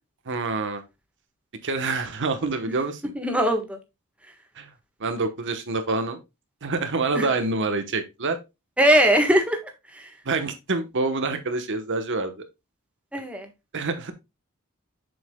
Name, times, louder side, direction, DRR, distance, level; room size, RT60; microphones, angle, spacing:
voice 1, 0.3-0.8 1.6-3.1 4.6-4.7 5.0-6.2 6.6-8.4 10.3-12.4 13.7-14.1, right 3 dB, 55° right, 1.1 m, -26 dB
voice 2, 3.1-3.8 7.1-7.3 8.8-9.6 10.0-10.1 13.1-13.5, right 1 dB, 5° right, 1.4 m, -20 dB
7.6 x 6.5 x 2.2 m
head